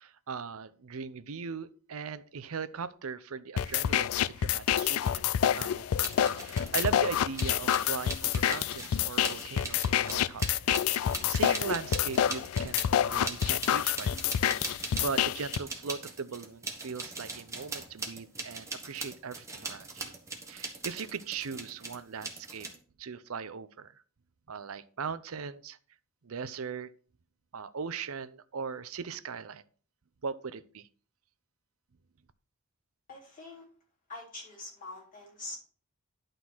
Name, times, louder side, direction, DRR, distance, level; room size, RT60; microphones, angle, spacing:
voice 1, 0.0-5.2 5.5-6.1 6.3-10.7 11.0-12.8 13.1-14.3 14.7-20.1 20.5-22.7 23.0-23.9 24.5-25.8 26.2-26.9 27.5-29.6 30.2-30.9, right 5 dB, 75° right, 14 dB, 0.6 m, -39 dB
sound 1, 3.6-15.6, left 10 dB, 70° left, 0.3 m, -28 dB
sound 2, 6.0-6.9 7.3-15.2 15.5-22.8, right 3 dB, 15° right, 1.4 m, -41 dB
voice 2, 33.1-33.6 34.1-35.6, left 2 dB, 40° left, -3 dB, 3.6 m, -44 dB
11.5 x 3.9 x 6.0 m, 0.43 s
head